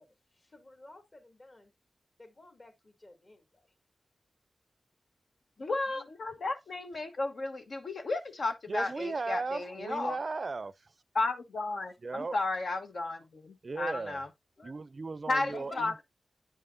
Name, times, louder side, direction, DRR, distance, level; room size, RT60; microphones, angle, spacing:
voice 1, 0.0-1.7 2.2-3.7 5.6-6.1 11.8-12.0 14.6-14.8 15.5-16.0, left 2 dB, 45° left, 2.4 m, -53 dB
voice 2, 5.6-10.2 11.1-14.3 15.3-16.0, left 2 dB, 70° left, 1.2 m, -33 dB
voice 3, 8.7-10.9 12.0-12.4 13.6-14.2 14.6-15.7, right 3 dB, 50° right, 0.4 m, -36 dB
9.8 x 5.5 x 2.6 m
wide cardioid pair, 80°, 0 cm